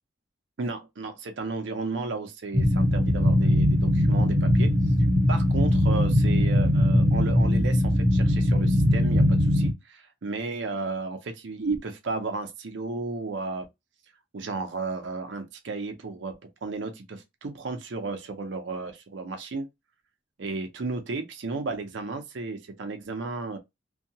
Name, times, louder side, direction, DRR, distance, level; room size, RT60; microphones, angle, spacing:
voice 1, 0.6-4.7 5.3-13.7 14.3-19.7 20.4-23.6, right 3 dB, 70° right, 0.5 m, -33 dB
sound 1, 2.5-9.7, left 1 dB, 40° right, 0.8 m, -21 dB
2.6 x 2.2 x 2.8 m
head